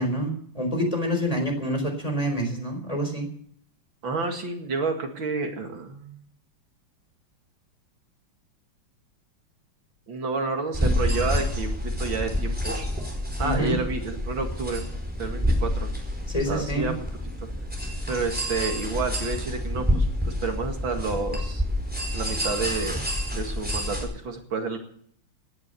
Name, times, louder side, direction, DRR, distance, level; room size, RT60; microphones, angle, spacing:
voice 1, 0.0-3.3 13.4-13.8 16.3-16.9, equal, 15° left, 3 dB, 4.3 m, -27 dB
voice 2, 4.0-6.2 10.1-12.8 13.4-14.9 15.2-15.9 16.5-17.1 18.1-21.6 22.1-23.0 23.3-24.8, right 3 dB, 65° right, 4 dB, 2.8 m, -30 dB
sound 1, 10.7-24.0, equal, 5° right, 4.5 m, -28 dB
18.0 x 11.0 x 6.9 m, 0.63 s
omnidirectional pair, 2.3 m